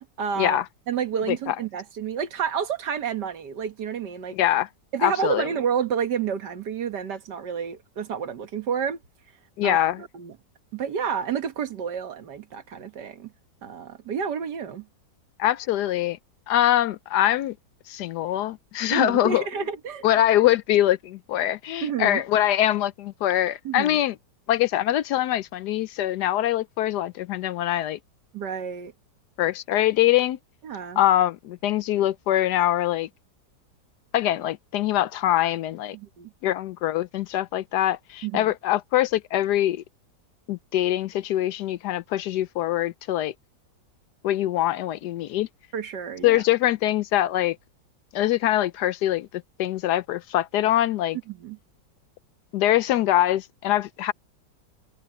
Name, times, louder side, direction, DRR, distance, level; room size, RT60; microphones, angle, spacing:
voice 1, 0.2-4.4 4.9-9.0 9.6-10.3 10.7-13.3 13.6-14.9 18.9-20.1 21.8-22.2 23.6-24.0 28.3-28.9 30.6-31.0 35.9-36.3 38.2-38.5 45.7-46.4 51.3-51.6, right 7 dB, 70° right, 1.9 m, -30 dB
voice 2, 4.3-4.7 5.0-5.5 9.6-10.0 15.4-16.2 16.5-17.5 17.9-19.4 20.0-24.1 24.5-28.0 29.4-30.4 31.0-33.1 34.1-36.0 36.4-39.8 40.5-43.3 44.2-45.5 46.2-47.6 48.1-49.3 49.6-51.2 52.5-54.1, left 13 dB, 75° left, 1.1 m, -23 dB
omnidirectional pair, 1.9 m